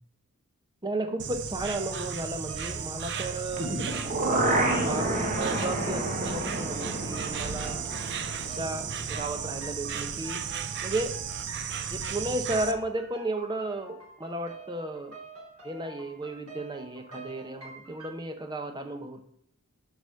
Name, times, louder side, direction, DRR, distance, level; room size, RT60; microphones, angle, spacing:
voice 1, 0.8-3.8 4.5-7.8 8.4-10.4 10.8-11.1 11.9-15.2 15.6-19.2, right 2 dB, 20° right, 6 dB, 0.9 m, -34 dB
Insect, 1.2-12.7, right 7 dB, 50° right, 0.7 m, -35 dB
sound 1, 1.7-18.1, right 3 dB, 75° right, 2.8 m, -47 dB
sound 2, 3.5-9.6 9.9-10.0, right 1 dB, 35° right, 1.4 m, -30 dB
8.2 x 4.0 x 6.4 m, 0.71 s
head